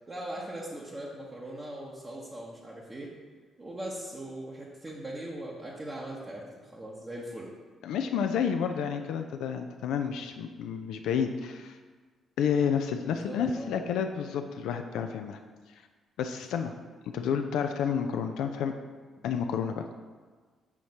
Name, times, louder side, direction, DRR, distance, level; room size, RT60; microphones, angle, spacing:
voice 1, 0.1-3.1 3.6-7.5 12.9-13.8, right 1 dB, 25° right, -4 dB, 1.0 m, -40 dB
voice 2, 7.8-11.8 12.4-15.4 16.2-16.7 17.1-18.7 19.2-19.9, left 7 dB, 65° left, 6 dB, 0.3 m, -30 dB
7.1 x 5.1 x 2.9 m, 1.4 s
figure-of-eight pair, 40°, 0 cm